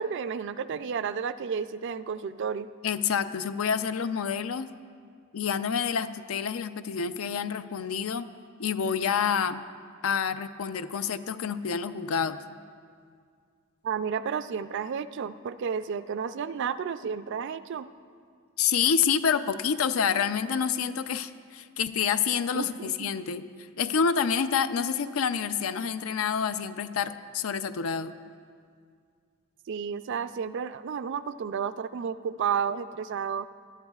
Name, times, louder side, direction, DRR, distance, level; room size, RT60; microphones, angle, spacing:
voice 1, 0.0-2.7 13.8-17.9 22.5-23.1 29.7-33.4, right 6 dB, 60° right, 13 dB, 0.4 m, -32 dB
voice 2, 2.8-4.7 5.3-8.3 8.6-9.6 10.0-12.4 18.6-22.7 23.0-23.5 23.8-28.1, left 7 dB, 80° left, 11 dB, 0.5 m, -28 dB
20.0 x 11.5 x 2.4 m, 2.1 s
head